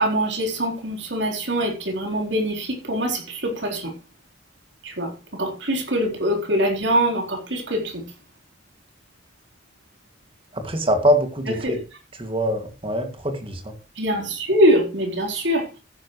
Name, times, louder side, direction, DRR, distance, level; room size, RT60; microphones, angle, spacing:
voice 1, 0.0-3.9 4.8-8.0 11.6-11.8 14.0-15.8, equal, 70° right, 4.0 m, -23 dB
voice 2, 10.5-11.8 12.2-13.7, equal, 30° right, 2.3 m, -23 dB
15.0 x 10.5 x 3.2 m
head